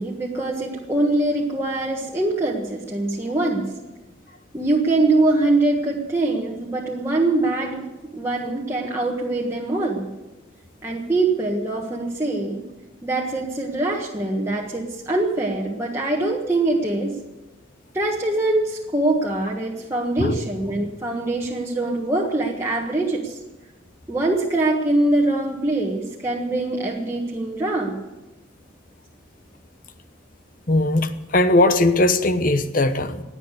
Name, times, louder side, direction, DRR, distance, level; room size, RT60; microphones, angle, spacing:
voice 1, 0.0-3.7 4.5-10.1 10.8-12.6 13.0-17.1 17.9-23.4 24.1-28.0, right 2 dB, 15° right, -3 dB, 1.5 m, -23 dB
voice 2, 30.7-33.2, left 2 dB, 45° left, 11 dB, 1.0 m, -19 dB
17.0 x 10.0 x 8.3 m, 1.1 s
head